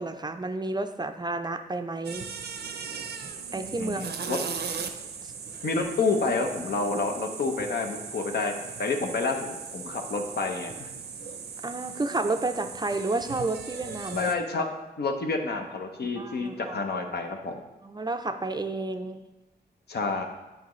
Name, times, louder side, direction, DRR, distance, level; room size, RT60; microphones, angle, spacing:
voice 1, 0.0-2.3 3.5-4.5 5.2-5.3 11.6-14.2 16.2-16.8 17.8-19.2, right 2 dB, 25° right, 7 dB, 0.4 m, -31 dB
sound 1, 2.0-14.3, right 6 dB, 70° right, 0.6 m, -38 dB
voice 2, 3.8-4.4 5.6-8.5 8.8-10.9 14.1-14.6 15.0-17.6 19.9-20.2, left 3 dB, 65° left, 4 dB, 0.9 m, -29 dB
9.2 x 5.0 x 3.1 m, 1.1 s
cardioid pair, 85°, 18 cm